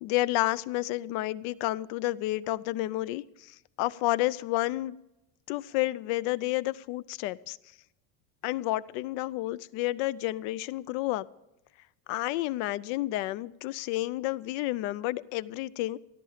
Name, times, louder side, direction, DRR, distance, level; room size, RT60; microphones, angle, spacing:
voice 1, 0.0-3.2 3.8-5.0 5.5-7.6 8.4-11.3 12.1-16.0, left 17 dB, 75° left, 19 dB, 0.6 m, -30 dB
13.5 x 12.5 x 5.0 m, 0.91 s
cardioid pair, 165°, 41 cm